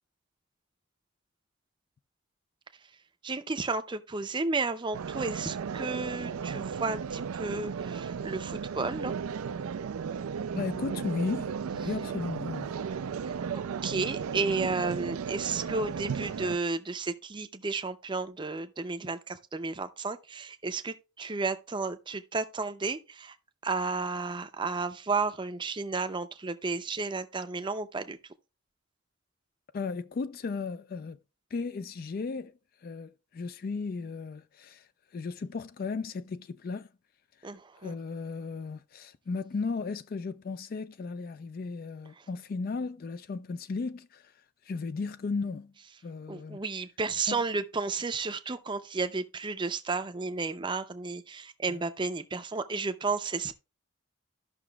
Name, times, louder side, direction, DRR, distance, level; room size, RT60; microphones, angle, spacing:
voice 1, 3.2-9.1 13.2-23.4 23.6-28.2 37.4-37.9 46.3-53.5, right 4 dB, 20° right, 0.5 m, -33 dB
sound 1, 4.9-16.6, right 6 dB, 85° right, 0.4 m, -35 dB
voice 2, 10.5-12.8 29.7-31.2 31.5-36.9 37.4-45.7 46.0-46.6 47.3-47.4 51.7-51.8, left 4 dB, 45° left, 0.3 m, -36 dB
14.0 x 5.9 x 2.3 m
head